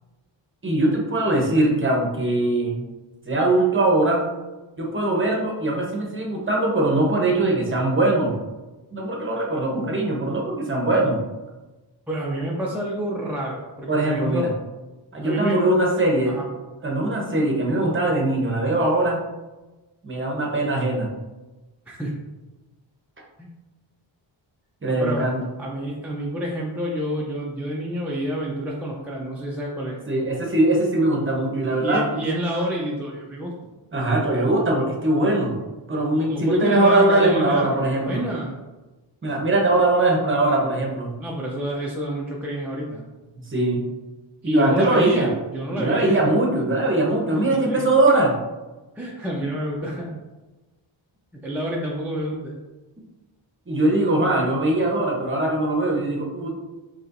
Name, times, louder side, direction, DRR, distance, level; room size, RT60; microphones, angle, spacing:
voice 1, 0.6-2.9 3.3-4.3 4.8-8.3 8.9-11.2 13.9-14.5 15.1-16.4 16.8-19.2 20.0-21.1 24.8-25.4 30.1-32.1 33.9-35.5 35.9-38.2 39.2-41.1 43.5-43.8 44.4-45.3 45.7-48.3 49.4-49.5 53.7-56.5, right 2 dB, 25° right, -1 dB, 0.9 m, -21 dB
voice 2, 12.1-14.5 15.2-15.6 16.3-16.5 21.9-22.1 23.4-23.5 24.9-25.2 25.6-30.0 31.7-33.7 36.1-38.6 41.2-43.0 44.4-46.2 47.3-47.8 49.0-50.2 51.4-52.6, equal, 5° right, -4 dB, 0.4 m, -28 dB
4.2 x 3.1 x 2.6 m, 1.1 s
wide cardioid pair, 115°, 48 cm